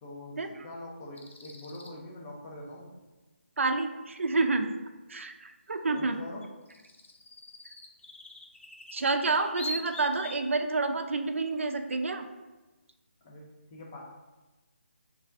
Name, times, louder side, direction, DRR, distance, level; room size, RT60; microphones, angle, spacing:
voice 1, 0.0-2.9 5.9-6.5 13.2-14.0, left 1 dB, 15° left, -2 dB, 0.5 m, -44 dB
sound 1, 1.2-1.9 6.0-6.1 6.4-10.5, left 1 dB, 85° left, 0.7 m, -43 dB
voice 2, 3.6-4.7 5.1-6.2 8.9-12.3, right 3 dB, 85° right, 7 dB, 0.5 m, -29 dB
3.3 x 2.4 x 4.4 m, 1.2 s
hypercardioid pair, 170°, 7 cm